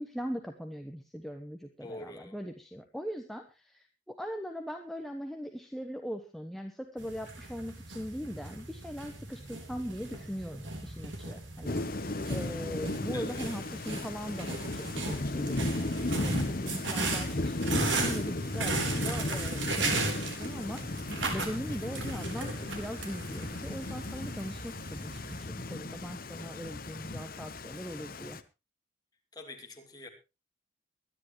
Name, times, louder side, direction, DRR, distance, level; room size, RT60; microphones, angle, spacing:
voice 1, 0.0-20.8 21.3-28.4, equal, ahead, 4 dB, 1.1 m, -40 dB
voice 2, 1.8-2.4 13.1-13.5 29.3-30.1, left 2 dB, 20° left, 2 dB, 2.9 m, -45 dB
sound 1, 7.0-25.4, right 3 dB, 75° right, 3.8 m, -37 dB
Thunder / Rain, 11.7-28.4, left 2 dB, 50° left, 1.0 m, -35 dB
23.5 x 10.5 x 3.2 m, 0.27 s
head